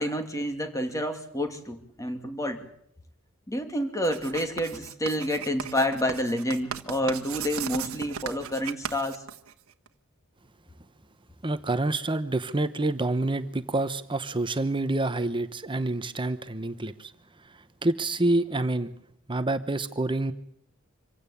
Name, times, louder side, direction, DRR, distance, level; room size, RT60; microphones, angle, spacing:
voice 1, 0.0-2.7 3.5-9.2, equal, 15° left, 6 dB, 2.6 m, -29 dB
Writing, 4.0-9.9, right 7 dB, 75° right, 1.4 m, -37 dB
voice 2, 11.4-17.1 17.5-18.9 19.3-20.3, right 2 dB, 25° right, 10 dB, 1.0 m, -27 dB
25.0 x 16.5 x 8.6 m, 0.72 s
head